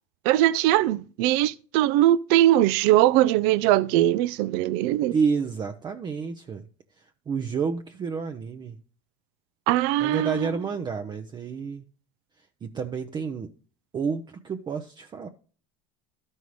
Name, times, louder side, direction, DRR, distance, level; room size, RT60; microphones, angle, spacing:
voice 1, 0.3-5.1 9.7-10.5, right 14 dB, 65° right, 0.5 m, -21 dB
voice 2, 5.1-6.7 7.0-8.8 10.0-11.8 12.6-13.5 13.9-15.3, right 5 dB, 25° right, 0.6 m, -30 dB
13.0 x 5.5 x 3.2 m
supercardioid pair, 125°, 18 cm